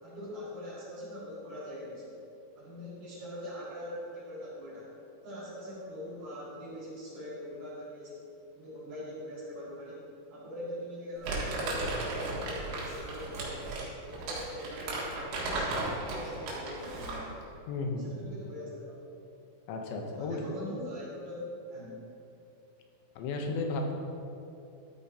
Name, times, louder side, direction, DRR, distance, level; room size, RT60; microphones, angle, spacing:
voice 1, 0.0-2.2 2.6-4.9 5.2-8.3 8.6-13.7 14.0-17.4 17.9-19.0 20.0-21.4 21.7-22.0, left 1 dB, 55° right, -9 dB, 3.9 m, -42 dB
Crumpling crinkling, 11.2-17.3, right 2 dB, 85° right, 3.8 m, -35 dB
voice 2, 17.7-18.1 19.7-20.4 23.2-23.9, left 3 dB, 85° left, 2 dB, 3.1 m, -33 dB
13.0 x 8.6 x 2.8 m, 2.7 s
omnidirectional pair, 5.0 m